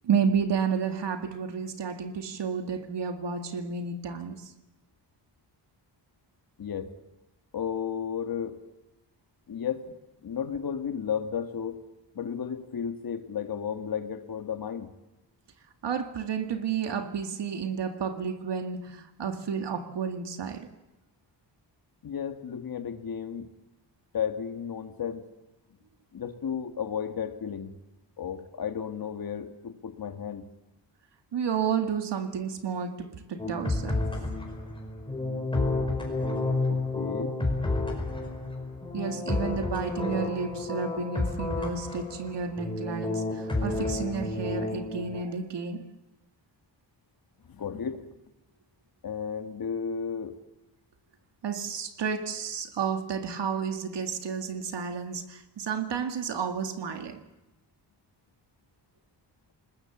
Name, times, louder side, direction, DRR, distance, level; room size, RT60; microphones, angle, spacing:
voice 1, 0.0-4.5 15.8-20.7 31.3-34.0 38.9-45.9 51.4-57.2, right 6 dB, 70° right, 7 dB, 2.3 m, -31 dB
voice 2, 6.6-6.9 7.5-8.6 9.5-9.9 10.2-11.8 12.2-14.9 22.0-23.5 24.1-25.3 26.1-27.7 28.2-30.5 36.7-37.4 47.5-48.1 49.0-50.4, left 7 dB, 55° left, 8 dB, 1.8 m, -33 dB
sound 1, 33.4-45.2, left 2 dB, 10° left, 5.1 m, -30 dB
29.0 x 19.5 x 7.2 m, 0.99 s
wide cardioid pair, 170°, 43 cm